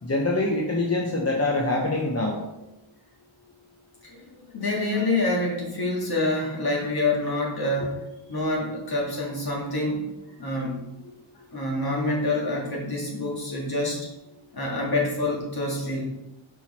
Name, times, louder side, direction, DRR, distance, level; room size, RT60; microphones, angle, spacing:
voice 1, 0.0-2.4, left 2 dB, 30° left, -1 dB, 0.8 m, -24 dB
voice 2, 4.0-8.0 8.3-10.0 10.4-10.8 11.5-14.0 14.5-16.0, left 2 dB, 50° left, -3 dB, 1.9 m, -27 dB
6.0 x 4.5 x 4.2 m, 0.93 s
wide cardioid pair, 115°, 48 cm